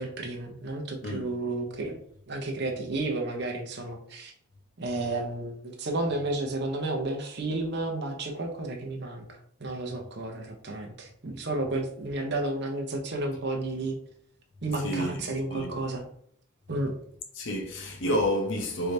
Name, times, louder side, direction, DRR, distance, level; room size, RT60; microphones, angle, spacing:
voice 1, 0.0-2.0 2.3-4.3 4.8-14.0 14.6-16.0 16.7-16.9, right 2 dB, 50° right, 0.8 m, -32 dB
voice 2, 14.8-15.8 17.4-18.9, equal, 60° left, 0.8 m, -30 dB
4.6 x 3.3 x 2.7 m
head